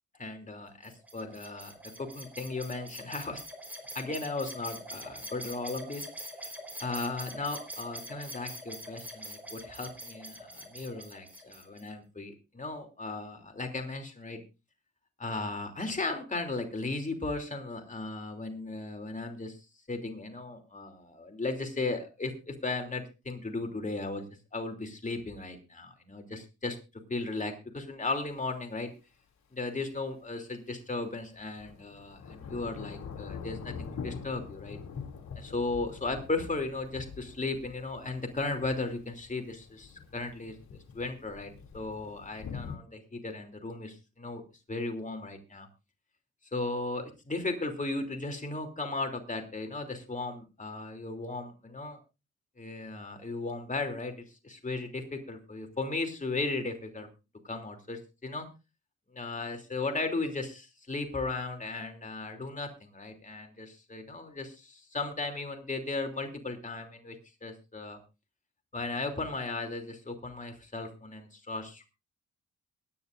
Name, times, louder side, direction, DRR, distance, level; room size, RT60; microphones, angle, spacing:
voice 1, 0.2-3.4 3.9-6.0 6.4-6.5 6.8-14.4 15.2-19.6 19.9-24.2 24.5-26.8 27.1-28.9 29.5-34.8 35.4-44.4 44.7-45.7 46.5-52.0 52.6-57.1 57.4-58.5 59.1-67.2 67.4-68.0 68.7-71.9, left 3 dB, 25° left, 4 dB, 3.0 m, -36 dB
sound 1, 0.8-11.9, equal, 5° right, 4.2 m, -44 dB
Thunder / Rain, 28.0-28.1 31.0-42.8, left 6 dB, 65° left, 2.9 m, -44 dB
23.0 x 9.8 x 2.6 m, 0.28 s
cardioid pair, 75°, 31 cm